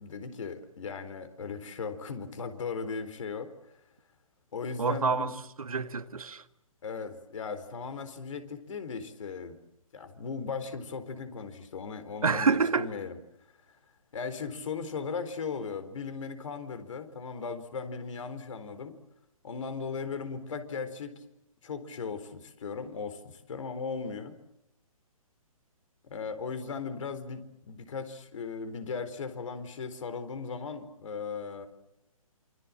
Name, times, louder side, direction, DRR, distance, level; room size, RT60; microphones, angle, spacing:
voice 1, 0.0-3.5 4.5-5.3 6.8-9.5 9.9-13.2 14.1-19.0 19.4-21.2 21.6-24.4 26.0-31.7, left 5 dB, 60° left, 4.2 m, -37 dB
voice 2, 4.8-5.3 5.6-6.4 12.2-12.9, right 5 dB, 75° right, 1.8 m, -27 dB
28.0 x 25.5 x 7.5 m
figure-of-eight pair, 135°, 19 cm